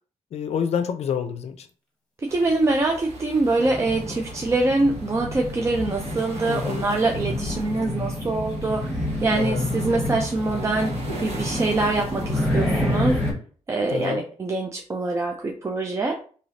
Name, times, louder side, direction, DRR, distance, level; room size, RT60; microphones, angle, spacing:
voice 1, 0.3-1.7 6.5-6.9 9.3-9.6 13.9-14.2, left 7 dB, 55° left, 8 dB, 0.5 m, -27 dB
voice 2, 2.3-10.9 11.2-13.2 13.7-16.2, right 2 dB, 25° right, 1 dB, 0.4 m, -24 dB
sound 1, 2.3-13.3, right 3 dB, 60° right, 1.3 m, -41 dB
sound 2, 3.4-13.3, left 1 dB, 5° left, 1.1 m, -29 dB
3.2 x 2.8 x 2.7 m, 0.42 s
cardioid pair, 120°, 13 cm